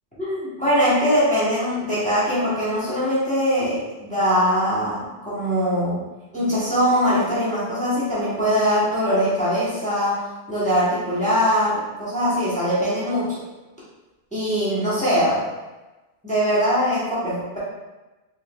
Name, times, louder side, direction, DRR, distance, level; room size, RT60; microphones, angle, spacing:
voice 1, 0.2-6.0 6.3-13.4 14.3-15.4 16.2-17.6, equal, 5° left, -10 dB, 1.1 m, -22 dB
4.6 x 3.0 x 2.3 m, 1.1 s
omnidirectional pair, 1.1 m